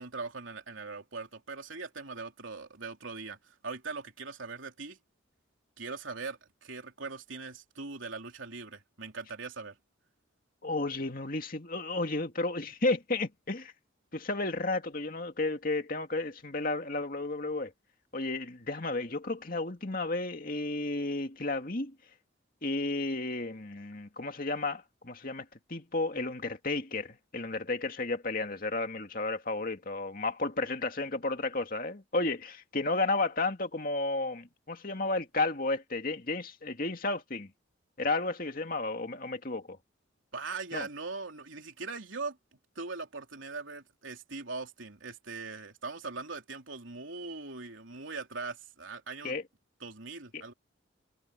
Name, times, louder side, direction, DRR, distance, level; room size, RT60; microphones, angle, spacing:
voice 1, 0.0-5.0 5.8-9.8 40.3-42.4 42.7-49.4 49.8-50.5, right 4 dB, 80° right, 3.3 m, -41 dB
voice 2, 10.6-13.7 14.1-17.7 18.1-22.0 22.6-37.5 38.0-39.8 40.7-40.9 49.2-49.4 50.3-50.4, left 2 dB, 45° left, 2.4 m, -32 dB
head